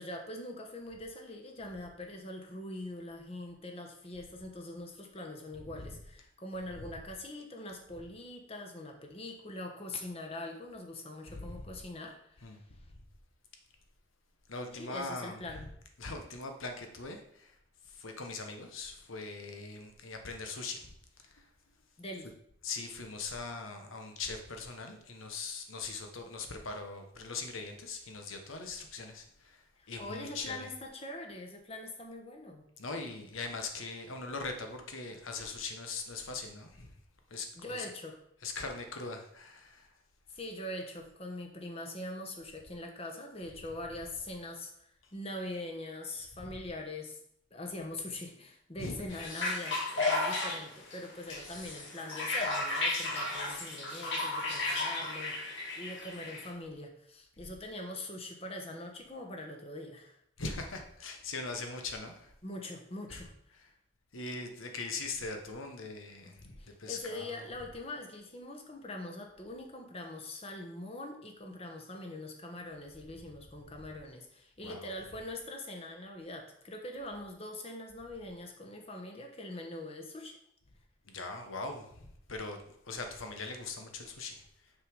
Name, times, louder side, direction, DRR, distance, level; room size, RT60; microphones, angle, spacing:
voice 1, 0.0-12.5 14.7-15.6 22.0-22.3 29.8-32.7 37.5-38.2 40.3-47.2 47.5-60.2 62.4-63.6 66.2-66.3 66.6-80.4, left 1 dB, 30° left, 2 dB, 1.1 m, -43 dB
voice 2, 11.3-11.8 12.4-12.6 14.5-15.7 16.0-17.5 17.9-20.9 21.2-21.4 22.6-30.7 32.8-36.9 37.3-37.9 38.4-39.9 46.3-46.6 48.8-49.0 60.4-62.3 63.1-63.2 63.6-63.7 64.1-67.4 74.6-74.9 81.0-84.4, left 3 dB, 85° left, 5 dB, 1.2 m, -41 dB
sound 1, 49.1-56.5, left 2 dB, 65° left, 2.2 m, -34 dB
6.6 x 5.7 x 4.8 m, 0.71 s
head